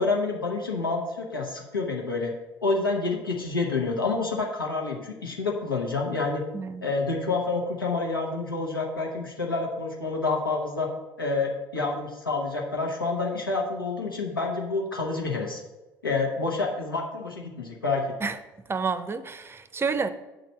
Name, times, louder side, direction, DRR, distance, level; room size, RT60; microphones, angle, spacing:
voice 1, 0.0-2.3 2.6-6.4 6.8-10.9 11.2-15.6 16.0-18.0, left 3 dB, 85° left, -1 dB, 1.1 m, -28 dB
voice 2, 18.7-20.1, right 5 dB, 20° right, 14 dB, 0.6 m, -29 dB
7.9 x 3.9 x 6.7 m, 1.1 s
figure-of-eight pair, 55°, 11 cm